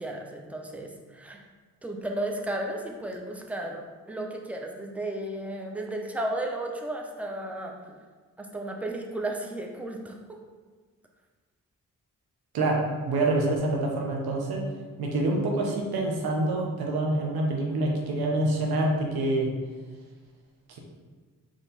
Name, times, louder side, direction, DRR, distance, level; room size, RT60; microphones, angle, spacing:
voice 1, 0.0-1.4 1.8-7.7 8.4-10.2, right 1 dB, 5° right, 1 dB, 0.7 m, -34 dB
voice 2, 12.5-14.6 15.0-19.5 20.7-20.8, right 2 dB, 90° right, 0 dB, 0.8 m, -26 dB
4.3 x 3.1 x 4.0 m, 1.5 s
supercardioid pair, 45°, 36 cm